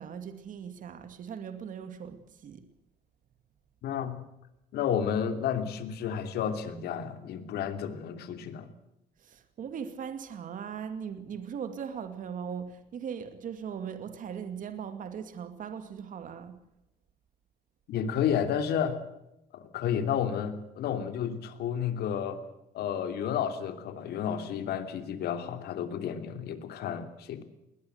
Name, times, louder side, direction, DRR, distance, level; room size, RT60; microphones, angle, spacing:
voice 1, 0.0-2.6 9.2-16.6, right 7 dB, 50° right, 8 dB, 2.4 m, -39 dB
voice 2, 3.8-4.2 4.7-8.7 17.9-19.0 19.5-22.4 22.7-27.4, left 8 dB, 70° left, 8 dB, 3.0 m, -31 dB
21.0 x 19.5 x 8.1 m, 0.87 s
cardioid pair, 110°, 17 cm